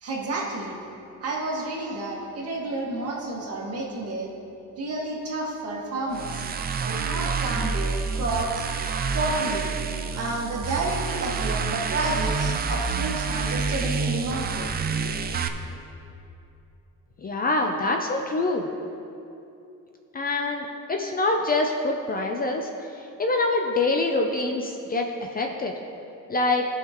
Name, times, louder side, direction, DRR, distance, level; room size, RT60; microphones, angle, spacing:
voice 1, 0.0-0.7 1.2-4.3 4.8-6.4 6.8-8.6 9.1-9.7 10.1-14.7, right 2 dB, 45° right, -3 dB, 1.8 m, -30 dB
sound 1, 6.1-15.5, right 5 dB, 30° right, 0.4 m, -28 dB
voice 2, 17.2-18.7 20.1-22.7 23.2-25.7 26.3-26.7, left 2 dB, 30° left, 3 dB, 0.5 m, -25 dB
17.0 x 5.8 x 3.0 m, 2.8 s
cardioid pair, 150°, 33 cm